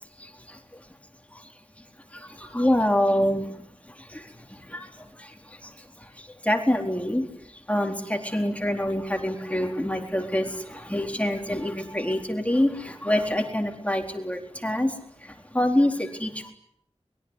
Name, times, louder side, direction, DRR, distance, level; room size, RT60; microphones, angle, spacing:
voice 1, 0.2-0.9 1.3-1.5 1.8-1.9 2.1-16.5, left 1 dB, 10° left, 4 dB, 4.0 m, -27 dB
24.0 x 22.5 x 9.9 m, 0.69 s
wide cardioid pair, 55°, 11 cm